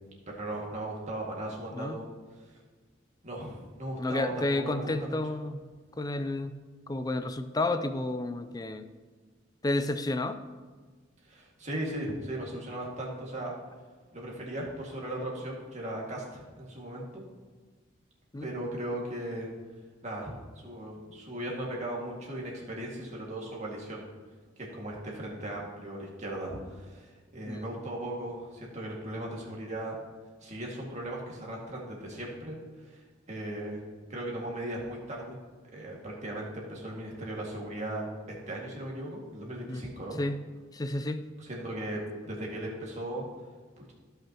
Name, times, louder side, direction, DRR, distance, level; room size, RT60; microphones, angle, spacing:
voice 1, 0.3-2.1 2.4-2.6 3.2-5.1 11.2-13.5 14.1-17.2 18.4-19.5 20.0-24.0 24.6-30.0 30.4-33.8 34.1-35.4 35.7-38.1 38.5-40.2 41.4-43.3 43.8-43.9, right 1 dB, 35° right, -2 dB, 2.0 m, -37 dB
voice 2, 1.7-2.0 4.0-5.6 5.9-6.6 6.9-8.9 9.6-10.4 18.3-18.5 27.5-27.7 39.7-39.8 40.2-40.4 40.7-41.2, left 2 dB, 20° left, 10 dB, 0.4 m, -31 dB
15.5 x 5.8 x 3.0 m, 1.5 s
head